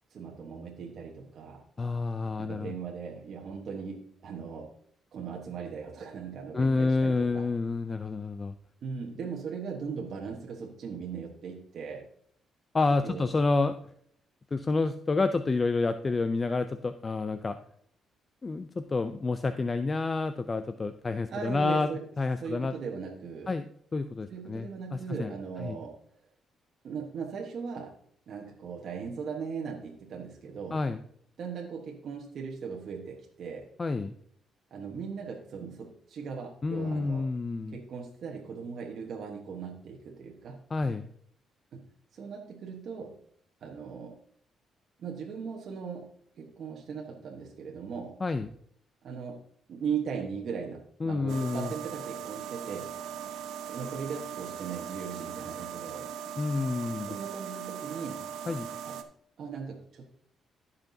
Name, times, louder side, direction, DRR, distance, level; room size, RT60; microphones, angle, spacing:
voice 1, 0.1-1.6 2.4-4.7 5.1-7.5 8.8-12.1 13.0-13.2 21.3-22.0 22.4-23.5 24.3-26.0 26.8-27.9 28.3-30.8 31.4-33.7 34.7-37.3 37.7-40.7 41.7-43.1 43.6-44.2 45.0-48.2 49.0-49.4 49.7-52.9 53.7-56.1 57.1-58.2 58.8-59.0 59.4-60.0, right 6 dB, 60° right, -1 dB, 1.2 m, -38 dB
voice 2, 1.8-2.7 6.5-8.5 12.7-13.7 14.5-17.6 18.4-21.9 22.2-22.7 23.5-23.6 23.9-25.3 25.6-25.8 30.7-31.0 33.8-34.1 36.6-37.8 40.7-41.1 48.2-48.5 51.0-51.7 56.4-57.2 58.5-58.7, left 3 dB, 30° left, 10 dB, 0.4 m, -29 dB
sound 1, 51.3-59.0, right 8 dB, 85° right, 0.7 m, -39 dB
14.5 x 5.7 x 2.7 m, 0.64 s
cardioid pair, 90°, 0 cm